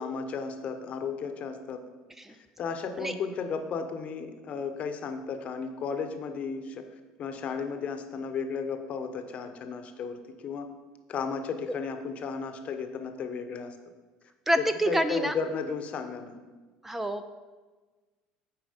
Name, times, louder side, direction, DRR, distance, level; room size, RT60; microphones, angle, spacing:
voice 1, 0.0-1.8 2.3-6.8 7.2-10.7 11.1-13.7 14.6-16.4, left 5 dB, 45° left, 7 dB, 0.9 m, -34 dB
voice 2, 14.5-15.3 16.8-17.3, right 1 dB, 10° right, 9 dB, 0.5 m, -27 dB
9.2 x 4.6 x 5.2 m, 1.3 s
supercardioid pair, 95°, 3 cm